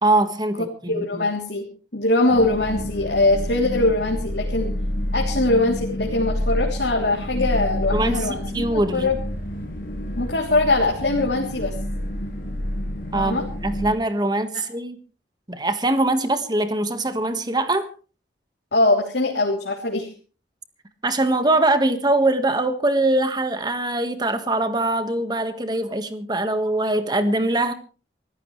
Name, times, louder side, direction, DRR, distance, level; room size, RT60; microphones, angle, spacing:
voice 1, 0.0-1.2 7.9-9.1 13.1-15.0 15.5-17.9 21.0-27.7, right 2 dB, 25° right, 1.6 m, -22 dB
voice 2, 0.9-1.7 1.9-4.7 5.1-9.2 10.1-11.7 13.1-13.5 14.5-14.6 18.7-20.1, left 2 dB, 75° left, 3.3 m, -22 dB
sound 1, 2.3-14.0, left 1 dB, 50° left, 5.9 m, -28 dB
25.5 x 15.0 x 3.3 m
head